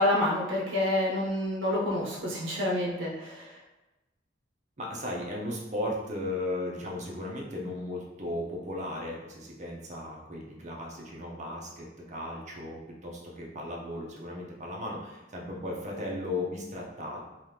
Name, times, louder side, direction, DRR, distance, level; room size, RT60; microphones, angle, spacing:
voice 1, 0.0-3.6, left 1 dB, 75° right, -3 dB, 0.7 m, -28 dB
voice 2, 4.8-17.2, left 1 dB, 40° right, -2 dB, 0.7 m, -36 dB
2.9 x 2.4 x 3.3 m, 1.1 s
head